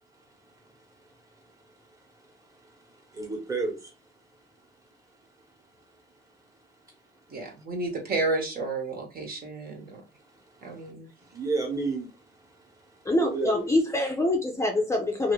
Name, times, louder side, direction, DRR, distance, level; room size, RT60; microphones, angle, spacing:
voice 1, 0.1-6.4 6.9-7.0 7.6-7.7 10.1-10.9 11.2-13.5, right 4 dB, 15° right, 1.2 m, -37 dB
voice 2, 7.3-10.0 10.6-11.1, right 3 dB, 50° right, 1.2 m, -31 dB
voice 3, 13.0-15.3, left 1 dB, 15° left, 0.6 m, -25 dB
2.7 x 2.6 x 3.0 m
cardioid pair, 90°, 20 cm